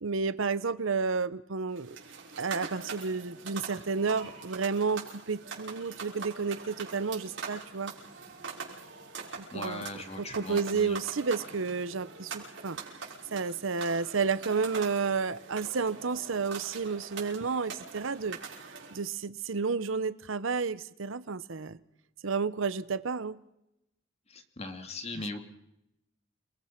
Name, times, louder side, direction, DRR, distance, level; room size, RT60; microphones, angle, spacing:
voice 1, 0.0-2.0 2.4-7.9 9.4-9.8 10.2-12.8 13.3-18.4 18.9-21.8 22.2-23.4, right 5 dB, 85° right, 15 dB, 0.8 m, -31 dB
sound 1, 1.7-19.0, right 5 dB, 70° right, 5.7 m, -43 dB
voice 2, 9.5-11.0 24.3-25.4, left 2 dB, 30° left, 6 dB, 2.4 m, -39 dB
29.0 x 20.0 x 5.9 m, 0.83 s
head